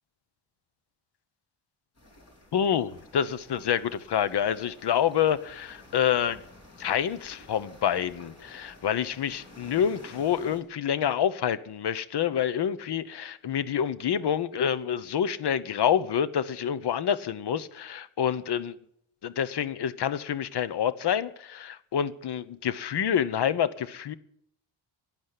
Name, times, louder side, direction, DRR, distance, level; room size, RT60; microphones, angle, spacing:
sound 1, 2.0-10.6, left 1 dB, 30° left, 3.7 m, -51 dB
voice 1, 2.5-6.4 6.8-18.8 19.2-24.2, left 9 dB, 55° left, 1.0 m, -27 dB
12.5 x 10.5 x 9.8 m
wide cardioid pair, 180°, 48 cm